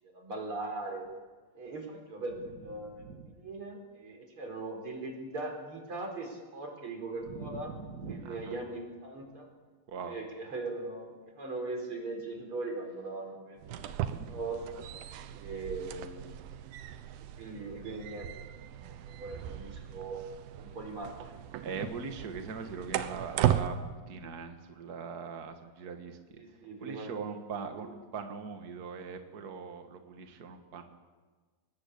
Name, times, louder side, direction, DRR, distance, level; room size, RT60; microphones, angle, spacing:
voice 1, 0.0-1.1 1.6-7.7 8.1-9.5 10.0-13.8 14.3-14.8 15.3-16.4 17.2-18.4 18.8-20.2 20.6-21.3 26.4-27.4, right 3 dB, 35° right, 3 dB, 5.0 m, -40 dB
voice 2, 3.0-3.3 7.3-8.6 9.9-10.2 13.7-14.3 21.6-23.8 24.1-31.0, right 5 dB, 60° right, 6 dB, 1.0 m, -41 dB
sound 1, 13.6-23.7, right 11 dB, 80° right, 2.8 m, -36 dB
24.0 x 20.5 x 8.4 m, 1.4 s
omnidirectional pair, 4.2 m